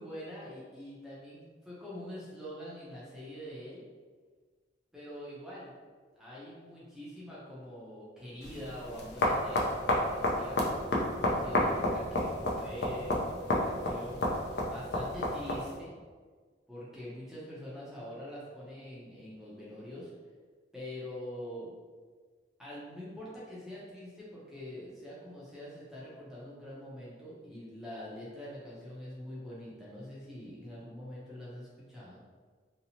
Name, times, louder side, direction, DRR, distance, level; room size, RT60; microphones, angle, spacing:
voice 1, 0.0-3.8 4.9-5.7 6.1-15.9 16.7-20.1 20.7-21.7 22.6-32.2, equal, ahead, -8 dB, 0.5 m, -44 dB
sound 1, 8.4-15.8, left 1 dB, 60° left, 0.4 m, -31 dB
2.7 x 2.0 x 2.7 m, 1.5 s
head